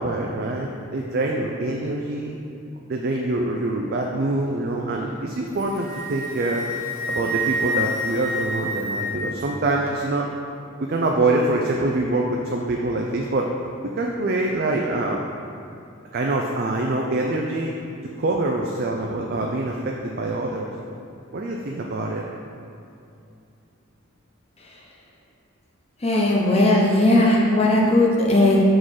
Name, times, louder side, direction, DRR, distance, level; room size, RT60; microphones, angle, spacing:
voice 1, 0.0-2.4 2.9-6.6 7.1-10.3 10.8-13.5 14.0-15.2 16.1-17.7 18.2-20.7 21.3-22.2, right 2 dB, 45° right, 0 dB, 0.4 m, -25 dB
Wind instrument woodwind instrument, 5.5-9.4, equal, 70° left, 1.1 m, -28 dB
voice 2, 26.0-28.6, left 1 dB, 30° left, -2 dB, 0.7 m, -17 dB
6.2 x 3.8 x 4.8 m, 2.6 s
head